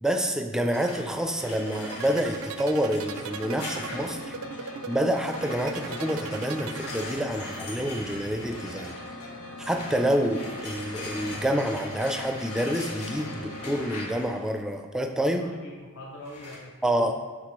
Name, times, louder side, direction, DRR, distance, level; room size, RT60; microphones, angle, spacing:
voice 1, 0.0-4.4 4.9-8.9 9.7-15.5 16.8-17.1, equal, 5° right, 5 dB, 0.4 m, -28 dB
sound 1, 0.7-4.4 5.2-14.5 16.3-16.6, left 2 dB, 90° left, 1.6 m, -41 dB
sound 2, 1.6-7.5, right 6 dB, 70° right, 0.3 m, -38 dB
sound 3, 3.0-13.8, left 1 dB, 75° left, 0.9 m, -41 dB
voice 2, 15.3-17.1, left 1 dB, 55° left, -2 dB, 0.7 m, -44 dB
11.0 x 4.0 x 3.1 m, 1.4 s
head